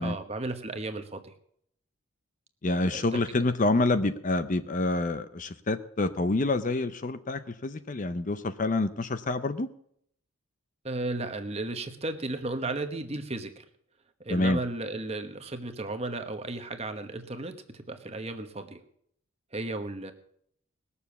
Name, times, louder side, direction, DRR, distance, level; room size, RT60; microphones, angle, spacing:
voice 1, 0.0-1.3 2.8-3.4 10.8-13.6 14.2-18.8 19.5-20.1, right 2 dB, 30° right, 7 dB, 1.1 m, -34 dB
voice 2, 2.6-9.7 14.3-14.6, left 2 dB, 35° left, 11 dB, 0.6 m, -27 dB
19.5 x 7.0 x 7.0 m, 0.68 s
head